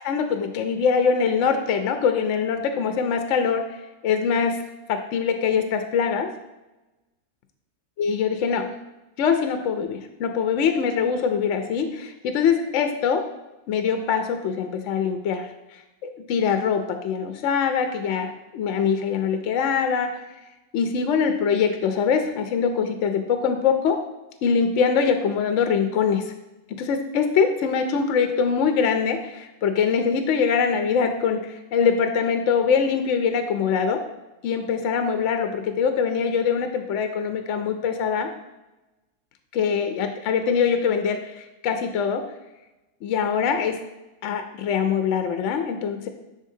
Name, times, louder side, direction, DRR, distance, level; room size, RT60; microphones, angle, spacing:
voice 1, 0.0-3.7 4.0-4.6 4.9-6.3 8.0-8.7 9.2-13.2 13.7-20.2 20.7-24.0 24.4-26.3 26.7-34.0 34.4-38.3 39.5-42.2 43.0-43.8 44.2-46.1, left 6 dB, 65° left, 7 dB, 0.8 m, -23 dB
10.0 x 3.7 x 2.7 m, 1.0 s
omnidirectional pair, 1.5 m